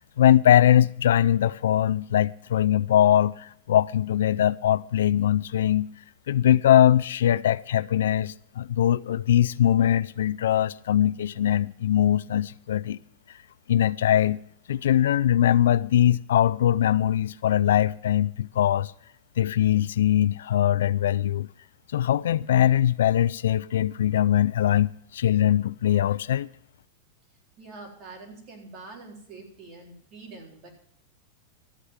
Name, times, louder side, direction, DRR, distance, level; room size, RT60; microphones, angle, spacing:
voice 1, 0.2-5.9 6.3-13.0 13.7-14.4 14.7-18.9 19.4-21.5 21.9-26.5, left 11 dB, 85° left, 0.4 m, -21 dB
voice 2, 27.6-30.7, right 3 dB, 35° right, 3.9 m, -45 dB
13.5 x 8.2 x 7.3 m
supercardioid pair, 155°, 0 cm